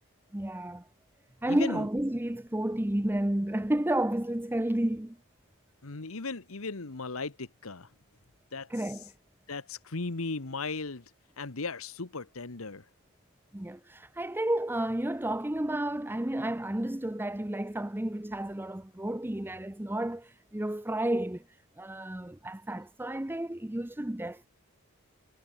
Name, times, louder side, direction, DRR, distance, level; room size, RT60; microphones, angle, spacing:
voice 1, 0.3-0.8 1.4-5.2 8.7-9.1 13.5-21.4 21.8-24.5, right 1 dB, 10° right, 0.7 m, -31 dB
voice 2, 1.5-1.9 5.8-7.9 8.5-9.1 9.5-11.1 11.4-12.8, left 3 dB, 75° left, 1.4 m, -37 dB
head